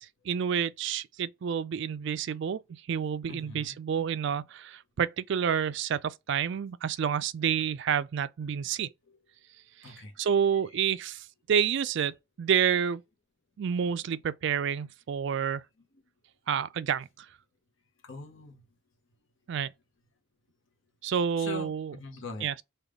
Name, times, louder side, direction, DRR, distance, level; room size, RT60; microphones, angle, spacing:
voice 1, 0.3-2.6 2.9-8.9 9.8-13.0 13.6-15.6 16.5-17.3 19.5-19.7 21.0-22.0 22.4-22.6, right 7 dB, 55° right, 0.3 m, -29 dB
voice 2, 3.3-3.8 9.8-10.1 18.0-18.6 21.4-22.5, left 3 dB, 60° left, 0.7 m, -42 dB
3.4 x 2.3 x 3.6 m
head